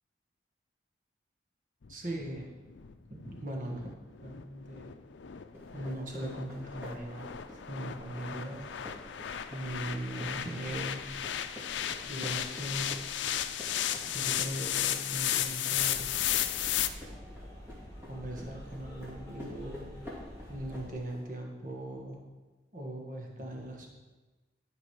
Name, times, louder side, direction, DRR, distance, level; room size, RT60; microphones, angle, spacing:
sound 1, 1.8-16.9, left 11 dB, 85° left, 0.5 m, -34 dB
voice 1, 1.9-2.5 3.1-3.9 4.2-5.0 5.7-7.3 7.7-8.7 9.5-11.3 12.1-12.8 14.0-16.2 18.1-20.0 20.5-22.2 22.7-23.9, right 1 dB, 45° right, 0 dB, 1.6 m, -39 dB
sound 2, 5.5-21.2, left 1 dB, 15° right, 2.4 m, -49 dB
sound 3, 15.6-20.9, equal, 20° left, 1.7 m, -47 dB
11.5 x 5.3 x 4.9 m, 1.2 s
head